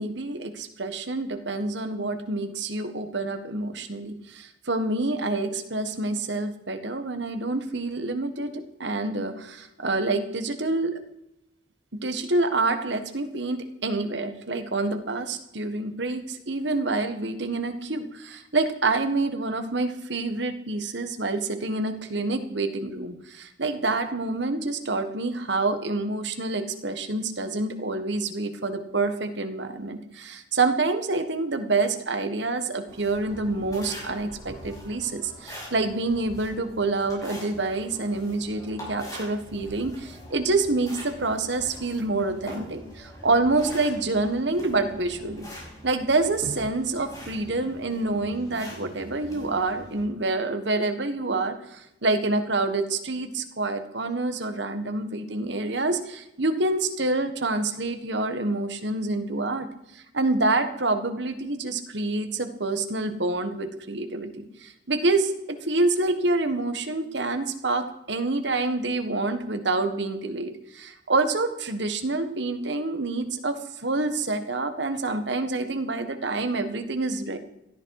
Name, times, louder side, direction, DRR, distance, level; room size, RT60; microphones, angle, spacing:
voice 1, 0.0-11.0 12.0-45.5 45.8-59.7 59.9-77.4, right 2 dB, 65° right, 8 dB, 1.6 m, -27 dB
sound 1, 32.9-50.0, equal, 20° left, 5.7 m, -43 dB
17.0 x 13.0 x 4.9 m, 0.83 s
head